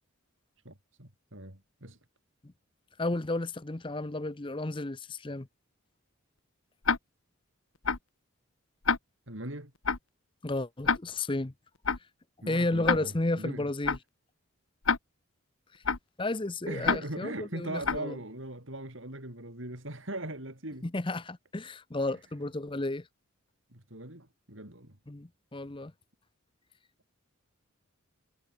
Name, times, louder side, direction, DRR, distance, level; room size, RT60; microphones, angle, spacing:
voice 1, 0.6-2.0 9.3-9.7 12.4-13.7 16.7-20.9 22.1-22.2 23.7-25.0, right 1 dB, 65° right, 5.5 m, -40 dB
voice 2, 3.0-5.5 10.4-11.5 12.5-14.0 16.2-18.2 20.8-23.1 25.1-25.9, left 2 dB, 25° left, 0.7 m, -32 dB
Tick-tock, 6.8-7.0 7.8-8.0 8.8-9.0 9.8-10.0 10.8-11.0 11.8-12.0 12.8-13.0 13.8-14.0 14.8-15.0 15.8-16.0 16.8-17.0 17.8-18.0, left 5 dB, 75° left, 1.5 m, -26 dB
head